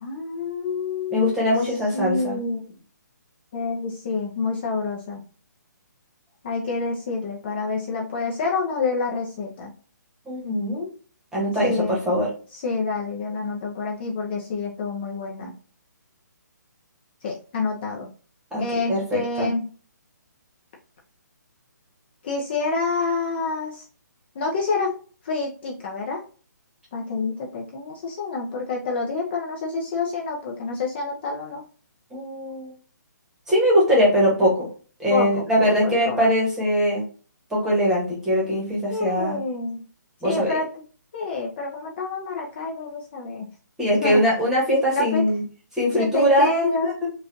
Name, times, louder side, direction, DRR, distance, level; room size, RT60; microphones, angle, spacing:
voice 1, 0.0-1.5 1.9-2.6 3.5-5.2 6.4-9.7 11.6-12.0 12.5-15.5 17.2-18.1 18.6-19.7 22.2-23.8 24.3-25.0 25.2-26.2 26.9-31.6 35.1-35.3 35.6-36.3 38.9-39.8 40.2-40.6 41.1-43.5 44.0-44.2 44.9-45.2 46.0-46.9, left 4 dB, 30° left, -1 dB, 0.7 m, -27 dB
voice 2, 1.1-2.4 10.2-10.9 11.3-12.3 18.5-18.6 18.9-19.5 32.1-32.7 33.5-34.7 35.0-37.0 37.5-39.4 40.2-40.6 43.8-45.4 45.7-47.1, equal, 5° right, -5 dB, 1.2 m, -21 dB
4.8 x 2.5 x 2.7 m, 0.39 s
hypercardioid pair, 165°, 10 cm